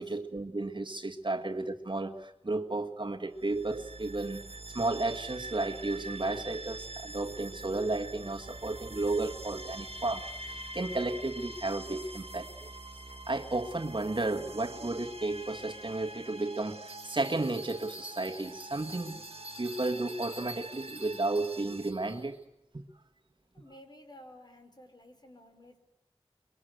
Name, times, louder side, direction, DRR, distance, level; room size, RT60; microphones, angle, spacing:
voice 1, 0.0-4.4 4.7-12.7 13.3-19.2 19.6-22.4 22.7-22.8, right 2 dB, 50° right, 5 dB, 1.7 m, -33 dB
sound 1, 3.3-21.9, right 2 dB, 70° right, 1.8 m, -45 dB
Bell, 16.9-22.4, right 1 dB, 15° right, 5.4 m, -48 dB
voice 2, 23.5-25.8, left 1 dB, 45° left, 6 dB, 4.6 m, -53 dB
24.5 x 23.0 x 8.1 m, 0.85 s
wide cardioid pair, 45°, 10 cm